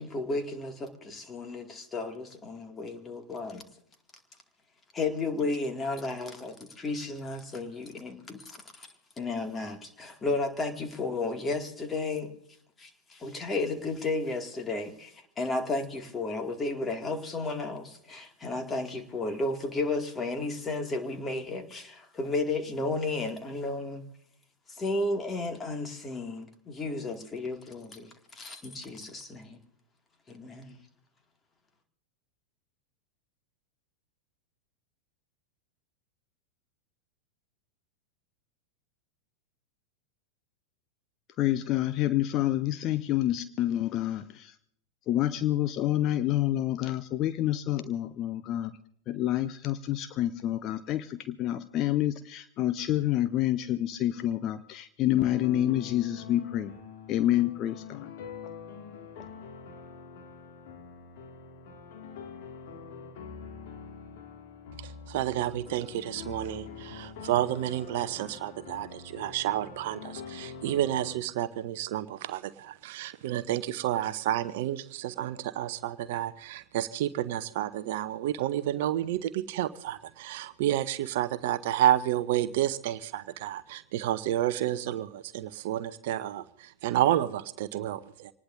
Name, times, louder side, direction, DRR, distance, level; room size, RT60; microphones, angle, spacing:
voice 1, 0.0-3.7 4.9-8.9 9.2-12.3 12.8-24.0 24.7-29.6 30.3-30.8, left 3 dB, 20° left, 5 dB, 2.2 m, -33 dB
voice 2, 41.4-44.5 45.1-48.8 49.1-56.7 57.1-58.1, left 13 dB, 35° left, 12 dB, 0.6 m, -28 dB
sound 1, 55.2-71.2, left 5 dB, 50° left, 2.2 m, -44 dB
voice 3, 64.8-88.3, right 13 dB, 50° right, 13 dB, 0.7 m, -30 dB
25.5 x 19.0 x 2.6 m, 0.66 s
figure-of-eight pair, 90°, 0 cm